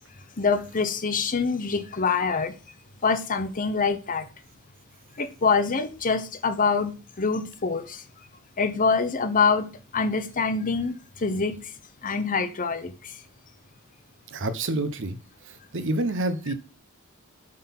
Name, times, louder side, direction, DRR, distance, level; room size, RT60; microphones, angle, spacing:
voice 1, 0.4-2.5 3.0-4.3 5.2-8.0 8.6-11.6 12.0-13.1, left 4 dB, 40° left, 0.8 m, -25 dB
voice 2, 14.3-15.2 15.7-16.5, right 2 dB, 60° right, 0.8 m, -27 dB
7.6 x 3.8 x 5.9 m
head